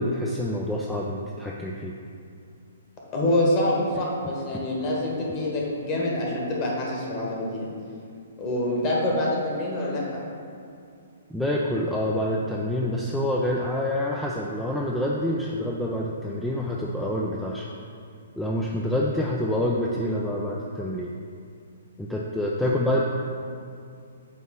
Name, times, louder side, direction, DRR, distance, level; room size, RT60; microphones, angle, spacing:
voice 1, 0.0-1.9 11.3-17.7 18.4-21.1 22.0-23.0, left 1 dB, 5° left, -3 dB, 0.4 m, -27 dB
voice 2, 3.1-7.7 8.4-10.2 22.6-22.7, left 1 dB, 30° left, -3 dB, 1.5 m, -26 dB
8.6 x 3.0 x 5.8 m, 2.4 s
figure-of-eight pair, 120°, 0 cm